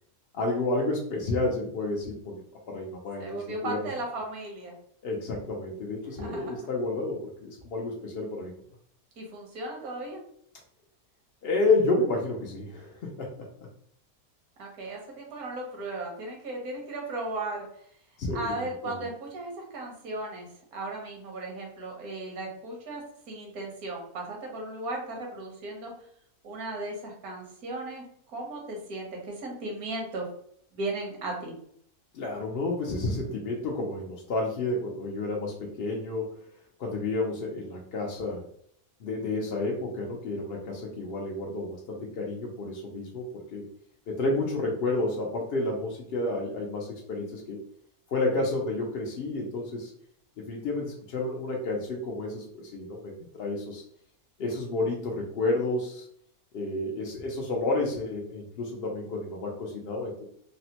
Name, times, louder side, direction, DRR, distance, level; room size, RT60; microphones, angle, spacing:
voice 1, 0.3-2.4 2.7-3.8 5.0-8.5 11.4-13.5 18.2-18.6 18.8-19.0 32.1-36.4 36.8-38.4 39.0-43.6 44.1-47.6 48.1-49.9 50.4-53.8 54.4-56.1 56.5-60.3, left 2 dB, 70° left, -1 dB, 0.5 m, -30 dB
voice 2, 3.2-4.7 6.2-6.7 9.2-10.2 14.6-17.7 18.3-25.9 26.4-30.3 30.7-31.6, right 2 dB, 75° right, 0 dB, 1.3 m, -36 dB
3.3 x 2.0 x 2.8 m, 0.66 s
omnidirectional pair, 1.6 m